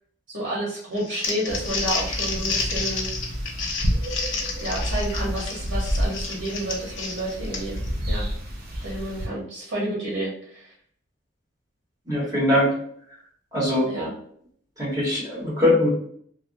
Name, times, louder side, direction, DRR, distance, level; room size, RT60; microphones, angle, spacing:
voice 1, 0.3-3.1 4.6-7.8 8.1-8.3 8.8-10.7 13.9-14.1, right 1 dB, 90° right, -5 dB, 0.9 m, -30 dB
Crumpling crinkling, 1.0-7.9, left 4 dB, 80° left, 0.6 m, -30 dB
sound 1, 1.5-9.3, equal, 50° right, 0.7 m, -30 dB
voice 2, 12.1-12.7 13.5-13.9 14.8-15.9, left 1 dB, 20° right, -6 dB, 1.2 m, -21 dB
3.2 x 2.0 x 2.5 m, 0.63 s
head